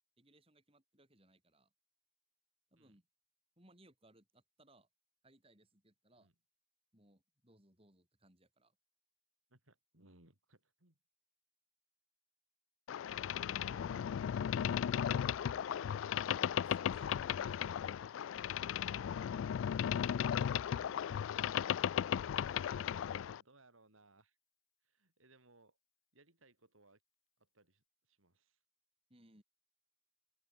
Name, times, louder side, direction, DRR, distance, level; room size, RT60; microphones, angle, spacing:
voice 1, 0.2-1.7 2.7-3.0 3.6-4.9 5.2-6.3 6.9-8.8 13.8-14.0 16.6-17.8 20.0-20.8 29.1-29.4, right 1 dB, 25° right, 5.6 m, -66 dB
voice 2, 9.5-11.0 13.1-14.0 17.1-17.4 19.1-19.4 20.4-20.9 23.0-24.4 24.8-25.8 26.1-27.0 27.4-28.6, right 2 dB, 80° right, 5.5 m, -66 dB
Boat Water vehicle, 12.9-23.4, left 9 dB, 70° left, 0.3 m, -36 dB
open air
head